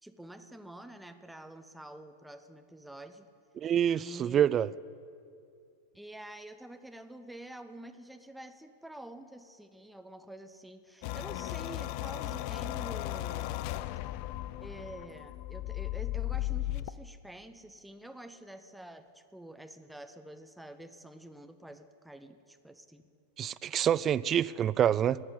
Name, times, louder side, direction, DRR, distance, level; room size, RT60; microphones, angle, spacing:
voice 1, 0.0-3.3 3.9-4.5 5.9-13.7 14.6-23.0, right 1 dB, ahead, 8 dB, 0.8 m, -47 dB
voice 2, 3.6-4.7 23.4-25.2, right 9 dB, 30° right, 18 dB, 0.3 m, -27 dB
sound 1, 11.0-16.9, left 15 dB, 45° left, 0.4 m, -36 dB
13.5 x 8.6 x 9.7 m, 2.5 s
figure-of-eight pair, 90°, 0 cm